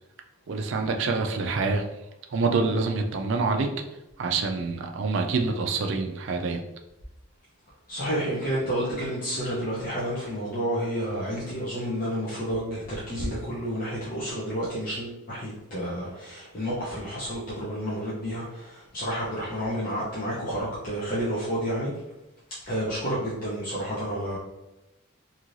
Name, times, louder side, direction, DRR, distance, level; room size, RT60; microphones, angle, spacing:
voice 1, 0.5-1.8 2.3-3.8 4.2-6.6, right 4 dB, 55° right, 4 dB, 0.4 m, -26 dB
voice 2, 7.9-21.9 22.7-24.4, equal, 40° left, -8 dB, 0.6 m, -30 dB
3.1 x 2.7 x 2.5 m, 0.95 s
head